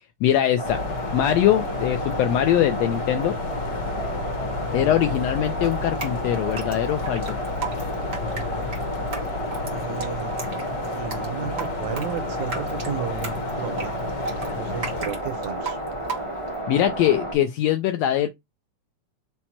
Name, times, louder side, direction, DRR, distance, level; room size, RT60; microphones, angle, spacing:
voice 1, 0.2-0.8 1.1-3.3 4.7-7.4 16.7-18.3, left 11 dB, 80° left, 1.5 m, -22 dB
sound 1, 0.6-15.1, left 4 dB, 65° left, 1.7 m, -33 dB
sound 2, 0.6-17.3, right 1 dB, 45° left, 0.3 m, -32 dB
Drip, 5.6-16.6, right 4 dB, 45° right, 0.8 m, -36 dB
voice 2, 9.6-10.4 10.9-14.0 14.6-15.8, right 8 dB, 75° right, 1.8 m, -33 dB
5.8 x 2.1 x 4.2 m
omnidirectional pair, 3.4 m